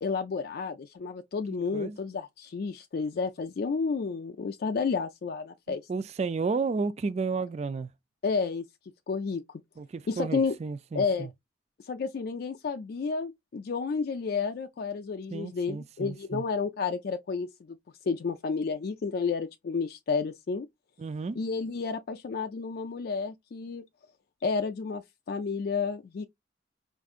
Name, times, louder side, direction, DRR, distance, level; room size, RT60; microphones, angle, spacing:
voice 1, 0.0-5.8 8.2-8.7 9.1-9.4 10.1-10.5 10.9-11.3 11.8-17.8 18.0-20.7 21.4-23.8 24.4-26.3, left 5 dB, 55° left, 0.4 m, -31 dB
voice 2, 5.7-7.9 9.8-11.3 15.3-16.4 21.0-21.4, right 4 dB, 35° right, 0.3 m, -32 dB
4.7 x 2.6 x 2.4 m
head